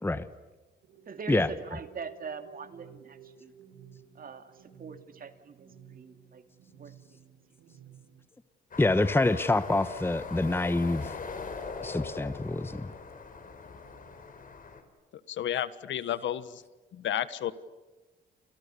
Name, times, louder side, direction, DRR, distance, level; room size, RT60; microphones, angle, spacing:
sound 1, 0.8-8.2, right 7 dB, 85° right, 4.4 m, -54 dB
voice 1, 1.1-3.5 4.2-4.5 4.8-6.4 6.8-6.9, right 6 dB, 45° right, 8 dB, 2.5 m, -42 dB
Cars travelling under bridge, 8.7-14.8, left 4 dB, 45° left, 4.5 m, -41 dB
voice 2, 8.8-11.2 11.8-12.9, left 2 dB, 10° left, 13 dB, 1.1 m, -26 dB
voice 3, 15.3-16.6 16.9-17.5, left 11 dB, 70° left, 15 dB, 1.5 m, -31 dB
30.0 x 28.5 x 7.0 m, 1.2 s
cardioid pair, 90°, 20 cm